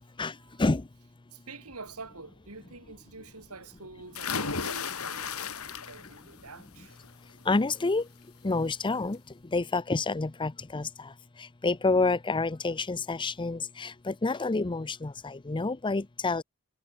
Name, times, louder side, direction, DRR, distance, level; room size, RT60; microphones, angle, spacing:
voice 1, 0.0-0.7 1.3-7.0, right 3 dB, 85° right, 4.5 m, -47 dB
sound 1, 4.1-6.2 6.6-7.1 8.5-8.6 8.9-9.0, left 5 dB, 70° left, 3.2 m, -34 dB
voice 2, 7.5-8.0 8.4-9.2 9.5-10.9 11.6-16.4, left 3 dB, 20° left, 0.6 m, -28 dB
head